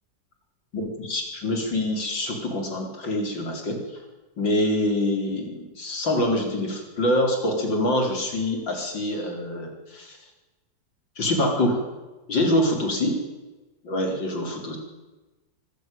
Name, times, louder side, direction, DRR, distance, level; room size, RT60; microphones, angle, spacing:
voice 1, 0.7-3.8 4.4-10.2 11.2-11.8 12.3-13.2 13.8-14.8, left 1 dB, 90° left, 3 dB, 5.0 m, -25 dB
24.0 x 14.5 x 9.2 m, 1.1 s
omnidirectional pair, 2.0 m